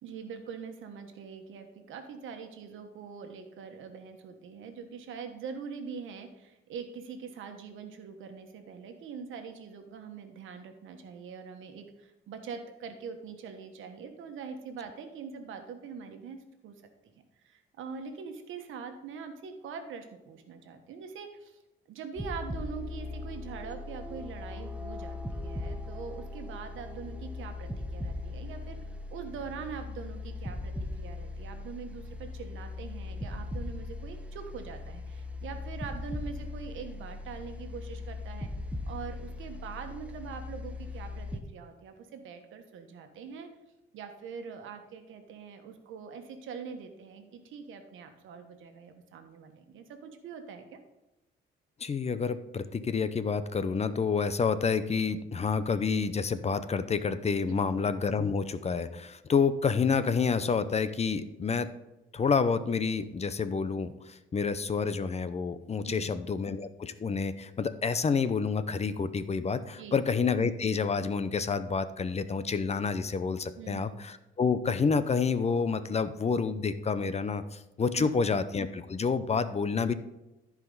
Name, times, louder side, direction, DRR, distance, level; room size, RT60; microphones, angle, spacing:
voice 1, 0.0-16.8 17.4-21.6 21.9-38.5 38.8-43.5 43.9-50.8 57.5-57.7 65.9-66.2 69.8-70.0 73.6-74.0 78.0-78.4, right 6 dB, 80° right, 6 dB, 1.3 m, -43 dB
sound 1, 22.2-41.4, left 2 dB, 5° right, 0.9 m, -39 dB
voice 2, 51.8-61.7 62.1-79.9, left 5 dB, 35° left, 12 dB, 0.7 m, -29 dB
14.5 x 5.0 x 3.9 m, 1.0 s
cardioid pair, 90°, 20 cm